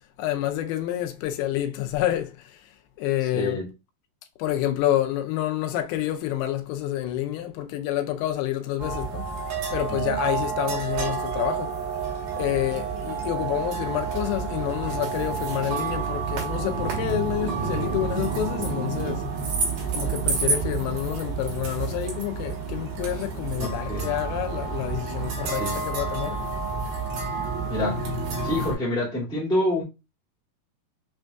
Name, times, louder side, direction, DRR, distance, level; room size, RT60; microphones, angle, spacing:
voice 1, 0.2-2.6 3.0-3.6 4.4-9.3 9.7-11.7 12.4-19.3 19.9-26.4, left 13 dB, 90° left, 2.6 m, -28 dB
voice 2, 3.3-3.7 9.9-10.2 23.6-24.2 25.5-25.8 27.7-28.0 28.4-29.8, left 1 dB, 5° left, 0.7 m, -27 dB
sound 1, 8.8-28.7, right 5 dB, 65° right, 2.7 m, -29 dB
6.3 x 2.6 x 2.3 m
omnidirectional pair, 4.4 m